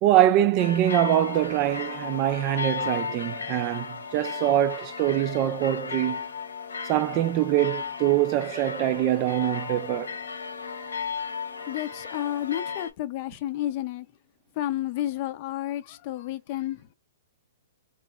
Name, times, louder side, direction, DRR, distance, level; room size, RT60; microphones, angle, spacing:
voice 1, 0.0-6.3 6.9-10.2, right 13 dB, 35° right, 0.4 m, -24 dB
sound 1, 0.6-12.9, left 6 dB, 90° left, 1.1 m, -35 dB
voice 2, 11.7-14.1 14.6-16.9, left 13 dB, 45° left, 0.5 m, -31 dB
3.7 x 3.1 x 2.3 m
hypercardioid pair, 135°, 0 cm